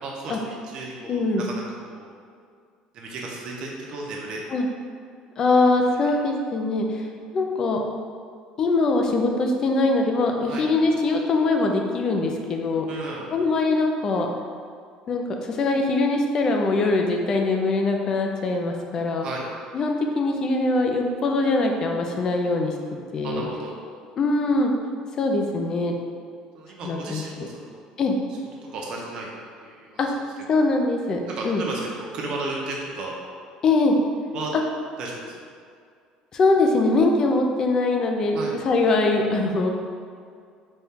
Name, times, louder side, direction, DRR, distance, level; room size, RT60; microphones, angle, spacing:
voice 1, 0.0-2.1 2.9-4.4 5.9-6.1 10.4-10.6 12.9-13.3 19.2-19.5 22.7-23.0 23.2-23.8 24.5-24.6 26.5-27.8 28.7-29.3 29.6-30.0 30.5-30.7 31.3-33.2 34.3-34.5 35.0-35.3 38.3-38.6, right 3 dB, 45° right, -2 dB, 0.7 m, -34 dB
voice 2, 1.1-1.5 4.5-4.7 5.4-7.1 7.3-7.8 8.6-12.9 13.3-14.3 15.1-19.3 19.7-22.7 23.1-23.4 24.2-24.7 25.2-25.9 26.8-27.5 28.0-28.2 30.0-30.1 30.5-31.6 33.6-34.0 36.3-38.4 38.6-39.7, left 3 dB, 30° left, 2 dB, 0.4 m, -22 dB
4.1 x 2.3 x 3.6 m, 2.2 s
cardioid pair, 160°, 2 cm